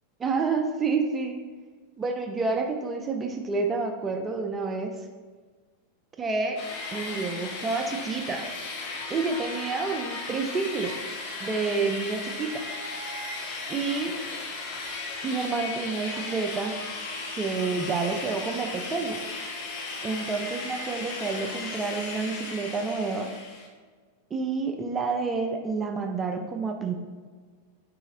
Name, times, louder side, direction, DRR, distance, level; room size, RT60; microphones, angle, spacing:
voice 1, 0.2-1.4 2.0-4.9 6.2-6.6 6.9-8.5 9.1-11.0 11.4-12.7 13.7-14.2 15.2-16.7 17.4-19.2 20.0-23.3 24.3-26.9, right 4 dB, 20° right, 4 dB, 0.4 m, -29 dB
sound 1, 6.6-23.7, left 3 dB, 45° left, 0.8 m, -36 dB
4.7 x 4.0 x 2.5 m, 1.5 s
figure-of-eight pair, 90°, 0 cm